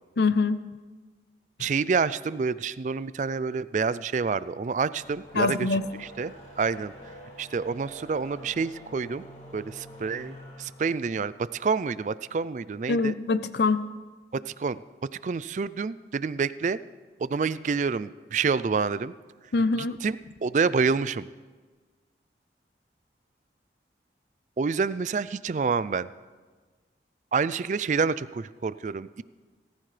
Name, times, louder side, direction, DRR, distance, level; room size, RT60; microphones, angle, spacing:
voice 1, 0.2-0.6 5.3-5.8 12.9-13.8 19.5-20.0, left 3 dB, 75° left, 13 dB, 0.6 m, -24 dB
voice 2, 1.6-6.3 6.6-6.9 7.4-9.2 9.5-13.2 14.3-14.8 15.2-16.8 17.2-19.1 19.8-21.3 24.6-26.1 27.3-29.2, right 5 dB, 45° right, 17 dB, 0.3 m, -28 dB
sound 1, 4.8-12.2, equal, 40° left, 4.5 m, -48 dB
18.0 x 14.5 x 3.3 m, 1.4 s
head